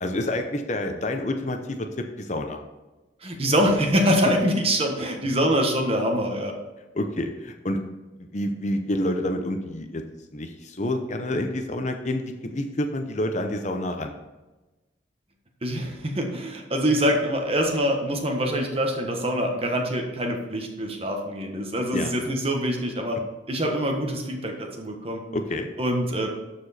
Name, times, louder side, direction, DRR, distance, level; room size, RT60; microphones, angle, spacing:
voice 1, 0.0-1.9 2.2-2.6 6.9-7.8 8.2-10.0 10.3-14.1 21.9-22.1 25.3-25.7, left 1 dB, 40° left, 5 dB, 0.7 m, -28 dB
voice 2, 3.2-6.5 15.6-23.2 23.5-25.2 25.8-26.3, equal, 30° right, 2 dB, 1.4 m, -24 dB
13.0 x 4.8 x 4.2 m, 1.1 s
head